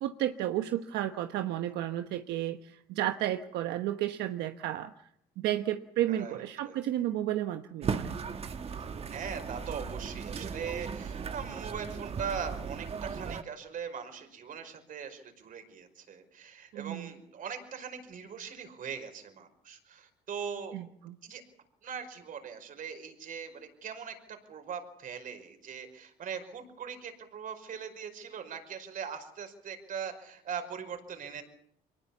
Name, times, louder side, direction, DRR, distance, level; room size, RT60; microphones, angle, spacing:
voice 1, 0.0-5.1 5.4-8.1 16.7-17.1 20.7-21.1, right 13 dB, 85° right, 7 dB, 1.1 m, -32 dB
voice 2, 6.1-6.8 8.7-20.8 21.2-21.4 21.8-31.4, right 7 dB, 55° right, 6 dB, 5.3 m, -41 dB
sound 1, 7.8-13.4, right 6 dB, 35° right, 1.5 m, -37 dB
24.5 x 20.0 x 7.1 m, 0.70 s
cardioid pair, 110°, 17 cm